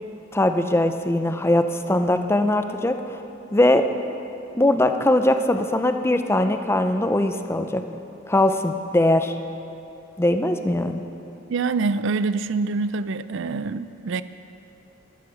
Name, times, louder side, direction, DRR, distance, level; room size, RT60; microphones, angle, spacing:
voice 1, 0.3-3.2 3.5-3.9 4.6-7.8 8.3-9.3 10.2-11.0, left 1 dB, 10° left, 7 dB, 0.5 m, -21 dB
voice 2, 11.5-14.2, right 4 dB, 60° right, 14 dB, 0.4 m, -25 dB
12.5 x 11.5 x 6.4 m, 2.9 s
head